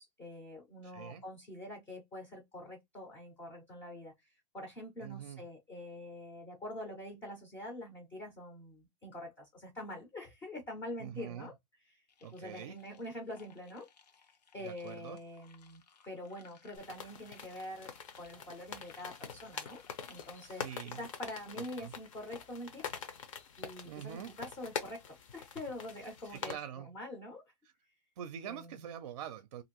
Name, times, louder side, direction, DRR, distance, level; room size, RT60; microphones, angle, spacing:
voice 1, 0.0-11.5 11.9-12.0 12.3-13.9 14.5-19.8 20.1-22.8 23.6-25.0 25.3-26.6 26.8-27.4 28.5-28.9, left 1 dB, 10° left, 0.5 m, -45 dB
voice 2, 0.8-1.2 5.0-5.4 11.0-11.5 12.2-12.8 14.6-15.2 20.4-21.0 21.6-21.9 23.8-24.3 26.3-26.9 28.2-29.6, right 9 dB, 50° right, 0.5 m, -45 dB
sound 1, 12.1-21.2, left 6 dB, 85° left, 0.9 m, -62 dB
sound 2, 16.7-26.5, left 7 dB, 50° left, 0.7 m, -45 dB
2.8 x 2.5 x 2.9 m
hypercardioid pair, 170°, 21 cm